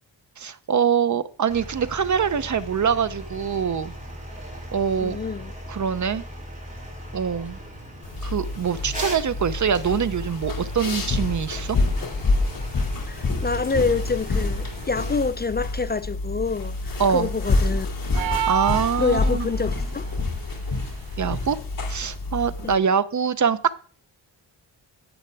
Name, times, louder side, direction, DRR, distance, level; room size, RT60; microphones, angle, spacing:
voice 1, 0.4-3.9 4.7-5.2 5.7-6.2 7.1-7.6 8.2-11.8 17.0-17.3 18.5-19.5 21.2-21.6 21.9-23.8, right 7 dB, 45° right, 0.7 m, -24 dB
sound 1, 1.5-15.2, equal, 20° right, 4.8 m, -39 dB
voice 2, 5.0-5.5 13.1-17.9 19.0-20.1 22.6-22.8, left 4 dB, 25° left, 0.3 m, -27 dB
sound 2, 8.0-22.7, left 3 dB, 50° left, 2.7 m, -27 dB
sound 3, 18.1-19.6, right 12 dB, 85° right, 0.7 m, -27 dB
11.0 x 8.7 x 3.4 m
wide cardioid pair, 150°, 43 cm